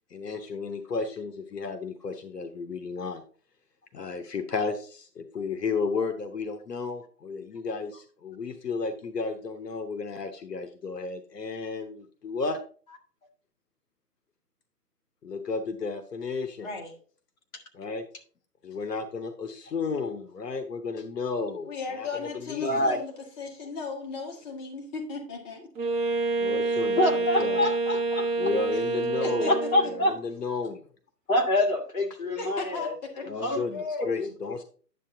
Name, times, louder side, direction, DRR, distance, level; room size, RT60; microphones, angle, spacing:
voice 1, 0.1-3.2 3.9-12.6 15.2-16.7 17.7-18.1 18.6-21.7 21.9-22.1 22.3-22.9 26.4-27.7 28.4-29.5 29.8-30.8 33.3-34.6, left 4 dB, 80° left, 8 dB, 1.1 m, -33 dB
voice 2, 16.6-17.0 21.6-25.7 28.9-29.9 32.3-33.3, left 4 dB, 25° left, 2 dB, 1.9 m, -36 dB
voice 3, 22.6-23.0 27.0-28.3 29.5-30.2 31.3-32.9 33.4-34.3, left 1 dB, 60° left, 2 dB, 2.3 m, -26 dB
Wind instrument woodwind instrument, 25.7-30.1, right 3 dB, 15° right, 1.3 m, -27 dB
9.9 x 7.6 x 2.7 m, 0.42 s
figure-of-eight pair, 140°, 48 cm